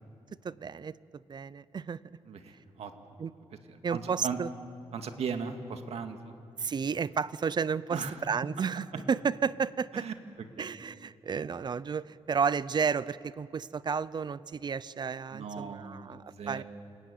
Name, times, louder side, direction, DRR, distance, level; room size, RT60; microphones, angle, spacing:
voice 1, 0.4-0.9 1.3-2.0 3.2-3.3 3.8-4.5 6.6-8.0 8.3-10.0 10.6-16.6, right 6 dB, 40° right, 18 dB, 0.6 m, -32 dB
voice 2, 2.3-2.9 3.7-4.4 4.9-6.4 7.9-8.2 9.9-10.1 10.6-10.7 15.3-16.6, right 6 dB, 70° right, 6 dB, 2.1 m, -38 dB
28.5 x 17.0 x 9.4 m, 2.7 s
cardioid pair, 100°, 11 cm